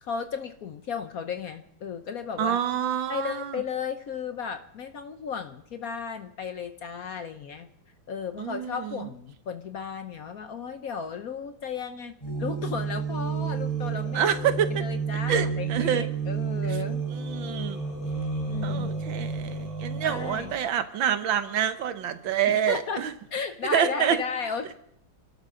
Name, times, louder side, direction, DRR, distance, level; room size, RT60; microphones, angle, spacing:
voice 1, 0.0-2.6 3.1-7.7 8.1-14.4 14.8-17.0 18.5-18.9 19.9-20.5 22.5-23.0 23.3-24.7, left 6 dB, 60° left, 9 dB, 1.0 m, -34 dB
voice 2, 2.4-3.6 8.4-9.1 14.1-14.8 15.3-16.0 17.1-17.8 18.6-23.1 23.7-24.2, right 9 dB, 75° right, 11 dB, 1.7 m, -27 dB
sound 1, 12.2-20.6, right 5 dB, 15° left, 3.8 m, -30 dB
29.5 x 12.5 x 3.8 m, 0.73 s
omnidirectional pair, 2.1 m